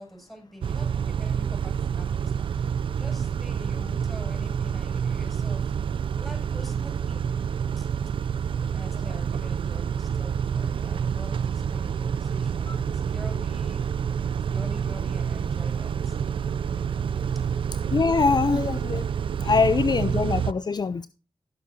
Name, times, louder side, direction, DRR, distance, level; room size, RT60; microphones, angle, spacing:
voice 1, 0.0-5.7 6.1-7.3 7.8-7.9 8.7-13.9 14.4-16.2 17.4-17.6 19.4-19.6, equal, ahead, 4 dB, 7.3 m, -45 dB
Car / Idling / Accelerating revving vroom, 0.6-20.5, right 7 dB, 70° right, 0.4 m, -28 dB
voice 2, 17.9-19.1 19.4-21.1, left 4 dB, 50° left, 14 dB, 0.6 m, -23 dB
16.0 x 7.6 x 2.8 m, 0.32 s
cardioid pair, 50°, 9 cm